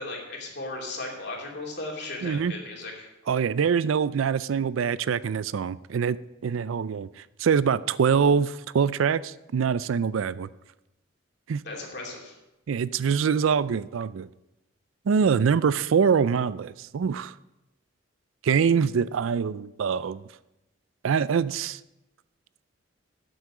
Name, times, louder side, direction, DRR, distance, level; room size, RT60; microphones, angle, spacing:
voice 1, 0.0-3.1 11.6-12.3, left 2 dB, 55° left, -1 dB, 2.8 m, -36 dB
voice 2, 2.2-2.5 3.3-6.2 6.4-7.1 7.4-10.5 11.5-11.6 12.7-14.3 15.1-17.3 18.4-20.2 21.0-21.8, right 6 dB, 90° right, 18 dB, 0.4 m, -24 dB
12.0 x 8.0 x 5.0 m, 0.94 s
head